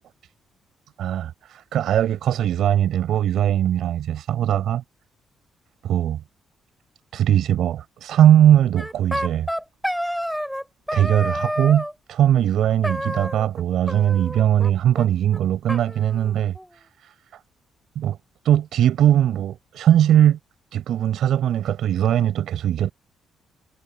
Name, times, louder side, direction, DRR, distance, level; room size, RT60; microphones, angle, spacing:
voice 1, 1.0-4.8 5.8-6.2 7.1-9.5 10.9-17.1 18.0-18.2 18.4-20.4 20.7-22.9, right 11 dB, 65° right, 6.9 m, -20 dB
sound 1, 8.8-10.6 10.9-11.9 12.8-13.6 13.9-14.7 15.0-15.1 15.3-15.4 15.7-16.7, equal, ahead, 5.9 m, -29 dB
cardioid pair, 160°, 0 cm